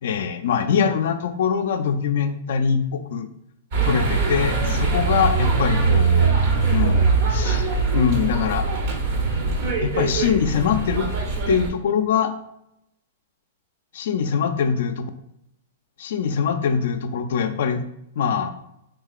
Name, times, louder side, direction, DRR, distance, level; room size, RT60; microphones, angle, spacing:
voice 1, 0.0-3.3 3.8-6.3 6.7-7.0 7.3-8.7 9.8-11.1 11.5-12.3 13.9-15.1 16.0-17.9 18.2-18.5, left 7 dB, 65° left, 8 dB, 0.3 m, -23 dB
sound 1, 3.7-11.7, right 4 dB, 55° right, 0.7 m, -21 dB
3.6 x 2.8 x 2.4 m, 0.82 s
hypercardioid pair, 145°, 0 cm